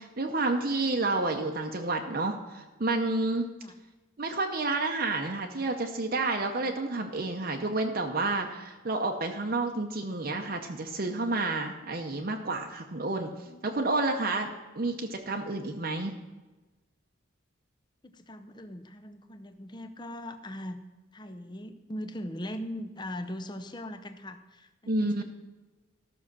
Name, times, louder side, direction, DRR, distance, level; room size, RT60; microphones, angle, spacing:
voice 1, 0.0-3.5 4.2-14.5 14.8-16.1 24.9-25.2, right 2 dB, 45° right, 3 dB, 0.7 m, -30 dB
voice 2, 13.4-13.7 18.0-20.8 21.1-25.2, left 1 dB, 20° left, 9 dB, 0.6 m, -40 dB
13.5 x 6.3 x 6.1 m, 1.2 s
head